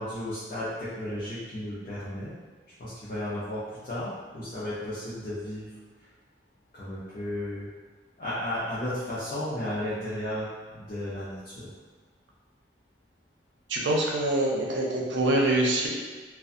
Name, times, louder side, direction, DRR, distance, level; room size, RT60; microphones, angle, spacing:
voice 1, 0.0-2.3 2.8-5.7 6.7-7.7 8.2-11.7, left 1 dB, 45° left, -11 dB, 0.5 m, -34 dB
voice 2, 13.7-15.9, right 1 dB, 85° right, -2 dB, 0.5 m, -25 dB
2.5 x 2.2 x 2.5 m, 1.4 s
head